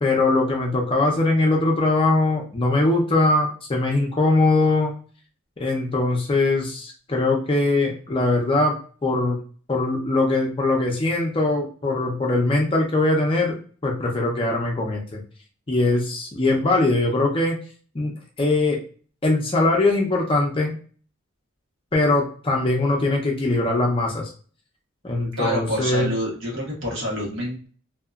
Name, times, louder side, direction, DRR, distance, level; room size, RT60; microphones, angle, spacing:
voice 1, 0.0-4.9 5.6-9.4 9.7-13.5 13.8-15.2 15.7-17.6 17.9-18.8 19.2-20.7 21.9-24.3 25.0-26.1, left 2 dB, 25° left, 0 dB, 0.5 m, -21 dB
voice 2, 25.4-27.7, equal, 65° right, -4 dB, 1.3 m, -27 dB
2.7 x 2.4 x 2.3 m, 0.42 s
head